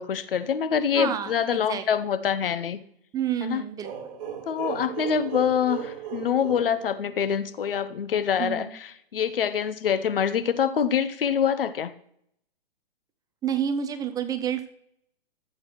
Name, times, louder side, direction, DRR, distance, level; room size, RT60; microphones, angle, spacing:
voice 1, 0.0-2.8 3.4-3.6 4.5-11.9, left 8 dB, 70° left, 12 dB, 0.9 m, -25 dB
voice 2, 1.0-1.8 3.1-3.9 8.4-8.7 13.4-14.7, right 8 dB, 10° right, 9 dB, 0.5 m, -29 dB
sound 1, 3.8-7.5, right 8 dB, 45° right, 2.8 m, -36 dB
14.0 x 7.9 x 3.1 m, 0.72 s
hypercardioid pair, 125°, 29 cm